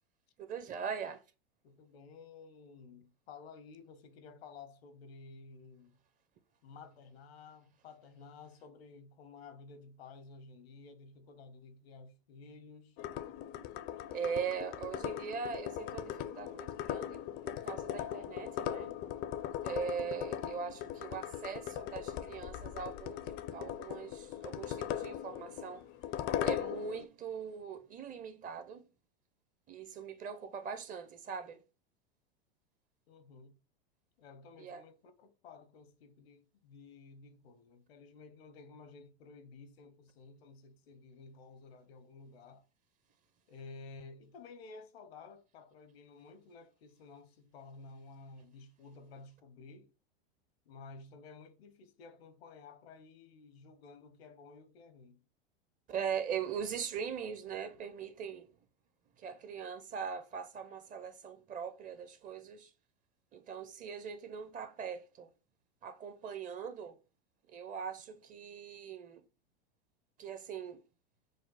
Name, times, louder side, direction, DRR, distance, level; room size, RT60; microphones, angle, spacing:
voice 1, 0.4-1.2 14.1-19.0 19.6-25.9 26.4-28.9 29.7-31.6 34.6-34.8 55.9-58.5 59.2-62.7 63.3-65.3 65.8-67.0 67.5-69.2 70.2-70.8, right 7 dB, 25° right, 0.6 m, -41 dB
voice 2, 1.6-6.0 6.6-13.0 33.1-33.6 34.2-42.6 43.5-49.9 50.7-55.2, left 4 dB, 80° left, 0.8 m, -53 dB
sound 1, 13.0-27.1, left 11 dB, 40° left, 0.4 m, -39 dB
5.1 x 2.0 x 4.0 m
hypercardioid pair, 115°, 30 cm